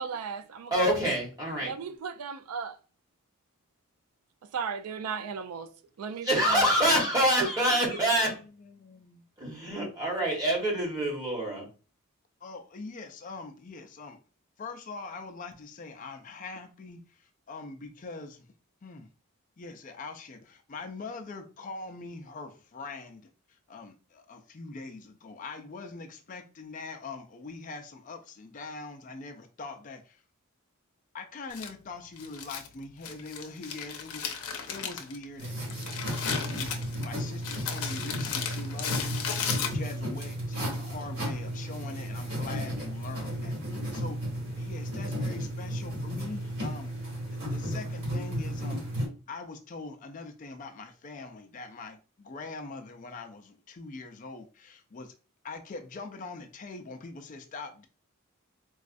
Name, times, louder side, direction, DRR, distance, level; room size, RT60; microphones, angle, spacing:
voice 1, 0.0-0.9 1.6-2.8 4.5-5.7 6.0-6.7 7.7-7.8, right 6 dB, 85° right, 0.3 m, -36 dB
voice 2, 0.7-1.7 6.2-8.3 9.4-11.7, equal, 15° right, 1.1 m, -26 dB
voice 3, 7.9-8.3 8.6-9.2 12.4-14.2 14.6-18.5 18.8-19.1 19.6-23.3 23.7-30.2 31.1-35.6 36.4-39.3 39.7-44.2 44.6-46.9 47.4-48.9 49.3-55.2 55.4-57.9, left 3 dB, 35° left, 0.4 m, -43 dB
Crumpling crinkling, 31.5-40.1, left 7 dB, 85° left, 0.6 m, -36 dB
sound 1, 35.4-49.1, equal, 45° right, 1.8 m, -34 dB
4.0 x 2.3 x 2.5 m
head